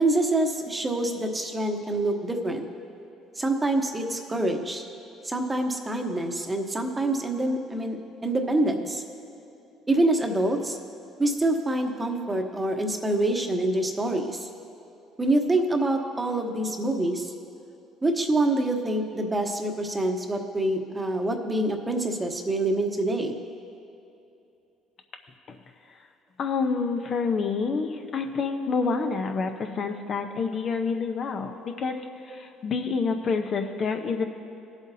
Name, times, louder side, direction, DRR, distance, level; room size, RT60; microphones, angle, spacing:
voice 1, 0.0-2.7 3.3-4.8 5.2-9.0 9.9-10.8 11.2-14.5 15.2-17.3 18.0-23.4, right 2 dB, 15° right, 4 dB, 1.0 m, -26 dB
voice 2, 26.4-32.0 32.2-34.2, left 4 dB, 50° left, 5 dB, 0.8 m, -28 dB
19.5 x 8.0 x 2.8 m, 2.7 s
cardioid pair, 100°, 0 cm